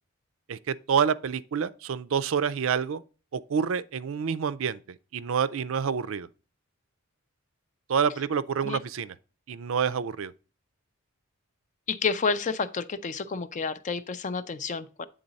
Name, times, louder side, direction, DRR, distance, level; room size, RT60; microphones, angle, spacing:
voice 1, 0.5-3.0 3.3-4.8 5.1-6.3 7.9-9.1 9.5-10.3, right 7 dB, 65° right, 0.4 m, -27 dB
voice 2, 11.9-15.1, left 5 dB, 35° left, 0.4 m, -30 dB
8.8 x 3.9 x 4.0 m
head